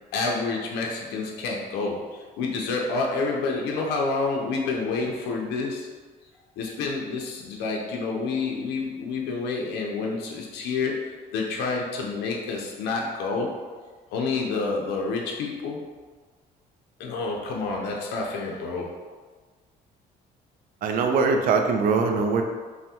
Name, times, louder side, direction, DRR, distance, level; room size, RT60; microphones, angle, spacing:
voice 1, 0.1-5.9 6.6-10.9 11.3-13.5 14.1-15.8 17.0-18.9, left 4 dB, 90° left, 0 dB, 0.5 m, -28 dB
voice 2, 20.8-22.4, right 4 dB, 55° right, 3 dB, 0.4 m, -22 dB
3.3 x 2.1 x 2.7 m, 1.4 s
cardioid pair, 110°, 17 cm